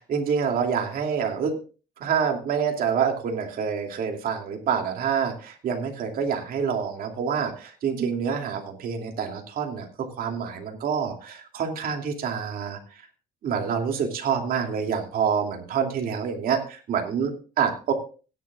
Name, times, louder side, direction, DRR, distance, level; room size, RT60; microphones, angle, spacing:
voice 1, 0.1-1.5 2.0-12.8 13.4-17.9, right 7 dB, 60° right, 3 dB, 2.6 m, -27 dB
17.0 x 10.5 x 2.4 m, 0.36 s
cardioid pair, 110°, 17 cm